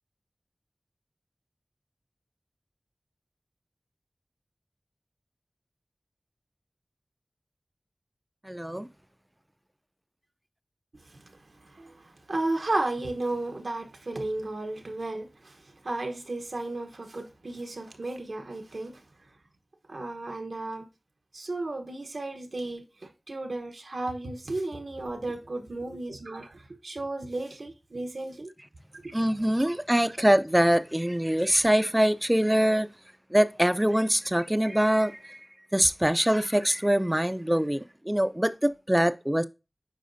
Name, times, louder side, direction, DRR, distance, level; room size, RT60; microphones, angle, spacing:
voice 1, 8.4-8.9 29.1-32.9 33.3-35.4 35.7-39.4, equal, 15° right, 0.5 m, -24 dB
voice 2, 11.1-19.0 19.9-20.9 21.3-28.5 28.9-29.2 30.0-30.1, right 2 dB, 75° right, 1.0 m, -34 dB
8.4 x 4.8 x 2.6 m
wide cardioid pair, 45°, 0 cm